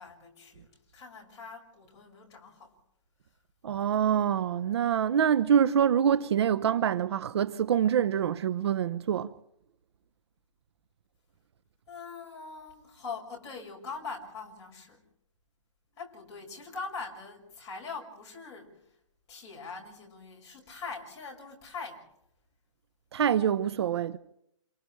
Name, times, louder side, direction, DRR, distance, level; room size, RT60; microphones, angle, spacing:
voice 1, 0.0-2.8 11.9-15.0 16.0-18.8 19.3-22.1, left 4 dB, 20° left, 6.0 m, -42 dB
voice 2, 3.6-9.3 23.1-24.2, right 9 dB, 55° right, 0.9 m, -25 dB
29.5 x 28.0 x 3.3 m
hypercardioid pair, 155°, 17 cm